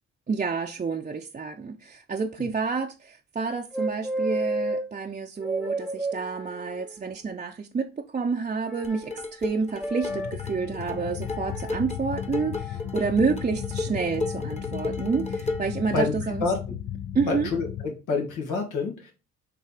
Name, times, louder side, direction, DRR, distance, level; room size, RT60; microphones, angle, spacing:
voice 1, 0.3-16.4 17.1-17.5, right 5 dB, 25° right, 0.6 m, -29 dB
sound 1, 3.7-4.9 5.4-7.1 8.6-9.2 9.8-10.3 11.2-11.8 12.7-13.0, right 2 dB, ahead, 1.0 m, -31 dB
sound 2, 8.8-15.8, left 3 dB, 20° left, 1.2 m, -35 dB
sound 3, 10.1-17.8, left 10 dB, 50° left, 0.6 m, -35 dB
voice 2, 17.3-19.1, left 3 dB, 90° left, 2.0 m, -27 dB
5.7 x 3.4 x 4.9 m
cardioid pair, 90°, 30 cm